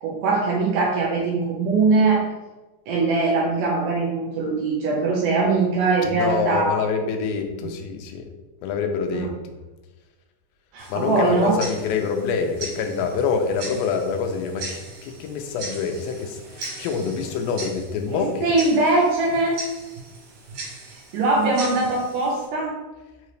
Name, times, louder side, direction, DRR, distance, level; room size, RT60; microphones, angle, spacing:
voice 1, 0.0-2.2 2.9-6.8 7.6-7.7 9.1-9.3 10.7-11.6 18.1-19.6 21.1-22.8, right 3 dB, 80° right, -2 dB, 1.9 m, -21 dB
voice 2, 6.0-8.3 8.6-9.3 10.9-18.5, left 5 dB, 85° left, 5 dB, 2.4 m, -26 dB
Tick-tock, 10.8-22.5, right 2 dB, 60° right, 2.1 m, -39 dB
5.7 x 2.8 x 3.2 m, 1.1 s
omnidirectional pair, 4.2 m